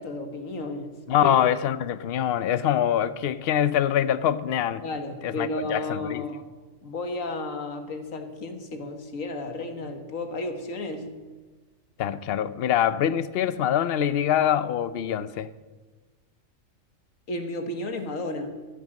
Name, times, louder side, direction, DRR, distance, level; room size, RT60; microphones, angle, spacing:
voice 1, 0.0-1.3 4.8-6.4 6.8-11.1 17.3-18.6, left 2 dB, 90° left, 7 dB, 1.9 m, -33 dB
voice 2, 1.1-4.8 5.2-6.2 12.0-15.5, left 10 dB, 55° left, 15 dB, 0.8 m, -24 dB
15.5 x 10.0 x 7.6 m, 1.3 s
omnidirectional pair, 1.3 m